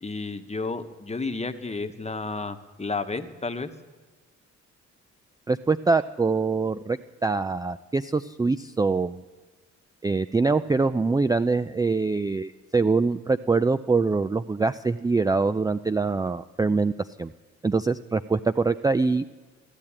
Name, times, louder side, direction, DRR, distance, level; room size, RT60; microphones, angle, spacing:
voice 1, 0.0-3.7, left 3 dB, 20° left, 8 dB, 1.2 m, -32 dB
voice 2, 5.5-9.2 10.0-16.9 17.2-17.3 17.6-19.3, right 4 dB, 10° right, 12 dB, 0.4 m, -24 dB
15.0 x 10.5 x 8.7 m, 1.3 s
cardioid pair, 70°, 30 cm